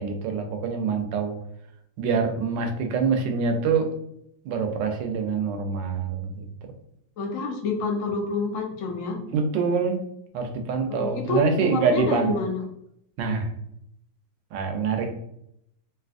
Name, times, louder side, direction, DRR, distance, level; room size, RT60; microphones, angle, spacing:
voice 1, 0.0-1.4 2.0-3.9 4.4-6.4 9.3-10.0 10.3-12.3 13.2-13.5 14.5-15.1, right 5 dB, 75° right, 5 dB, 1.2 m, -25 dB
voice 2, 7.2-9.2 10.9-12.6, left 3 dB, 75° left, 1 dB, 0.7 m, -28 dB
3.3 x 2.7 x 2.4 m, 0.76 s
omnidirectional pair, 2.2 m